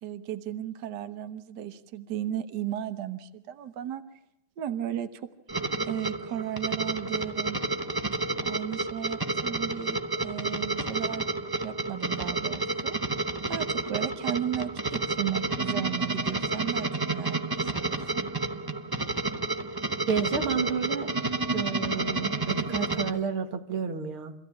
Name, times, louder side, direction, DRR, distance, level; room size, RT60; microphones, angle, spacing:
voice 1, 0.0-4.0 4.6-5.2 5.8-7.6 8.4-11.2 11.6-13.0 13.5-18.2, right 11 dB, 60° right, 10 dB, 1.6 m, -35 dB
sound 1, 5.5-23.1, right 2 dB, 25° right, 0.5 m, -30 dB
voice 2, 20.1-21.1 21.5-24.3, right 6 dB, 85° right, 6 dB, 2.6 m, -30 dB
25.5 x 15.5 x 8.5 m, 0.81 s
omnidirectional pair, 2.3 m